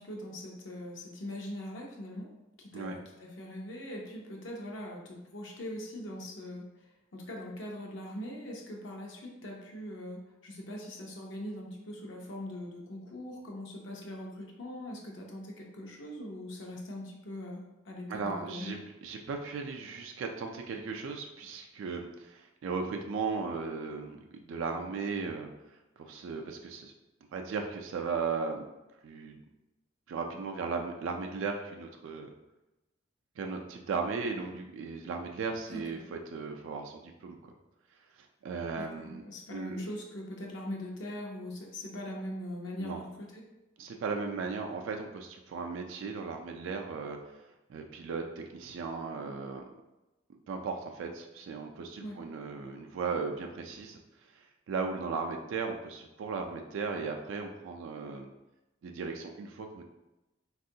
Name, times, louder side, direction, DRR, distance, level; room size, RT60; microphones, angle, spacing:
voice 1, 0.0-2.3 2.6-6.6 7.1-18.8 35.7-35.8 38.7-43.4 52.0-52.2, left 1 dB, 70° left, -1 dB, 0.5 m, -41 dB
voice 2, 18.1-25.5 26.0-26.9 27.3-28.6 29.0-29.4 30.1-32.3 33.4-37.5 38.4-39.2 39.5-39.8 42.8-43.0 43.8-47.4 47.7-49.6 50.5-54.0 54.4-58.3 58.8-59.8, right 4 dB, 75° right, 3 dB, 0.3 m, -36 dB
3.5 x 2.3 x 2.6 m, 1.0 s
head